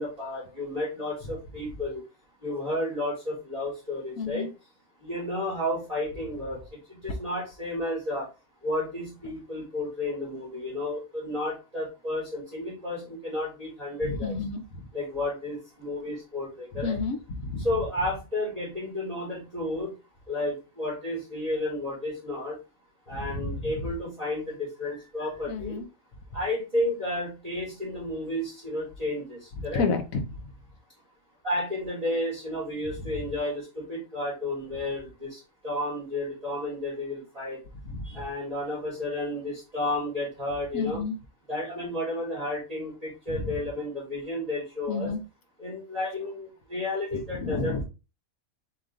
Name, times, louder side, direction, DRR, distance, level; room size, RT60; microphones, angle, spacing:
voice 1, 0.0-2.0 2.4-4.5 5.0-8.3 8.6-14.4 14.9-17.0 17.6-20.0 20.3-22.6 23.1-25.8 26.3-29.9 31.4-37.6 38.0-41.0 41.5-45.2 45.6-47.8, left 1 dB, 25° right, -7 dB, 2.5 m, -32 dB
voice 2, 4.2-4.5 14.0-14.6 16.8-17.7 23.3-23.4 25.5-25.8 29.7-30.2 37.9-38.0 40.7-41.1 44.9-45.2 47.4-47.8, left 4 dB, 85° left, 6 dB, 1.3 m, -30 dB
4.2 x 3.0 x 3.7 m, 0.28 s
omnidirectional pair, 1.4 m